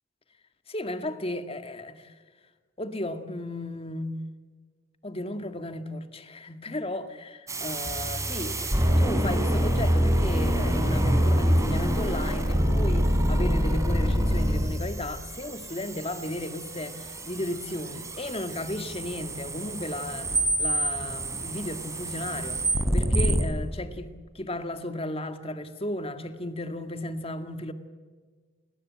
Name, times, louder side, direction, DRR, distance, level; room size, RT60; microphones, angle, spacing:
voice 1, 0.7-2.2 2.8-4.2 5.0-27.7, left 1 dB, 30° left, 2.1 m, -34 dB
sound 1, 7.5-23.4, equal, 15° right, 4.4 m, -26 dB
sound 2, 7.9-10.0 10.4-10.5, right 1 dB, ahead, 4.8 m, -40 dB
29.5 x 21.0 x 8.7 m
head